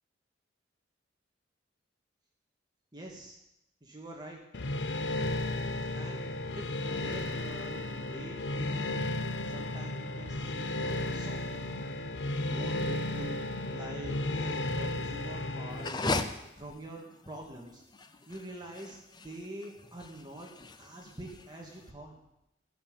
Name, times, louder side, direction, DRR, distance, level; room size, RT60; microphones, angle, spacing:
voice 1, 2.9-3.4 3.8-4.4 5.9-6.2 6.5-9.0 9.4-11.6 12.4-17.8 18.3-22.2, right 1 dB, 25° right, 0 dB, 1.8 m, -45 dB
sound 1, 4.5-15.9, left 2 dB, 70° left, 0.9 m, -34 dB
sound 2, 15.7-21.8, left 3 dB, 25° left, 0.7 m, -38 dB
14.5 x 7.2 x 8.8 m, 0.85 s
head